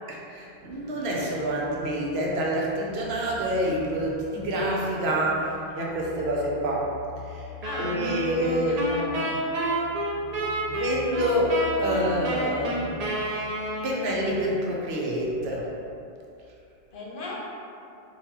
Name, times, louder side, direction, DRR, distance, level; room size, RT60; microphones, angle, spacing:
voice 1, 0.3-6.9 7.2-7.5 7.8-8.8 10.7-13.1 13.8-15.7, right 1 dB, 85° right, -3 dB, 0.9 m, -27 dB
sound 1, 0.5-14.5, left 5 dB, 10° left, 0.4 m, -44 dB
voice 2, 7.6-8.3 8.6-9.4 16.9-17.3, left 2 dB, 60° left, -4 dB, 0.8 m, -36 dB
sound 2, 7.6-14.2, right 1 dB, 50° right, 0.5 m, -30 dB
4.1 x 2.3 x 2.9 m, 2.6 s
omnidirectional pair, 1.1 m